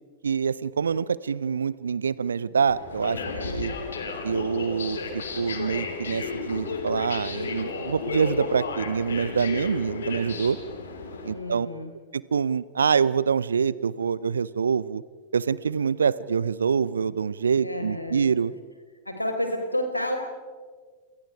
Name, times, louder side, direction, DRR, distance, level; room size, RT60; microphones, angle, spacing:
voice 1, 0.2-3.7 4.2-5.0 5.3-10.6 11.2-11.7 12.1-15.0 15.3-18.5, right 6 dB, 70° right, 20 dB, 0.7 m, -25 dB
sound 1, 2.7-11.3, left 4 dB, 70° left, 3.4 m, -33 dB
voice 2, 3.3-3.8 11.3-11.9 17.6-18.3 19.0-20.2, left 1 dB, 85° left, 5 dB, 4.3 m, -30 dB
28.0 x 28.0 x 4.9 m, 1.6 s
figure-of-eight pair, 90°, 0 cm